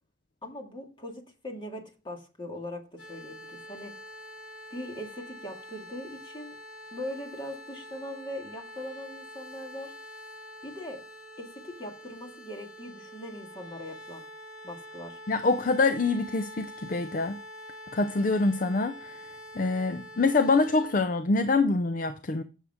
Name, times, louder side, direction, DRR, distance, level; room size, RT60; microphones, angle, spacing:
voice 1, 0.4-4.0 4.7-6.6 6.9-9.9 10.6-11.0 11.4-14.2 14.6-15.2, left 1 dB, 25° left, 2.0 m, -40 dB
sound 1, 3.0-20.9, equal, 70° left, 4.2 m, -46 dB
voice 2, 15.3-17.4 17.9-19.2 19.5-22.4, left 3 dB, 45° left, 0.5 m, -25 dB
9.8 x 7.3 x 3.5 m
head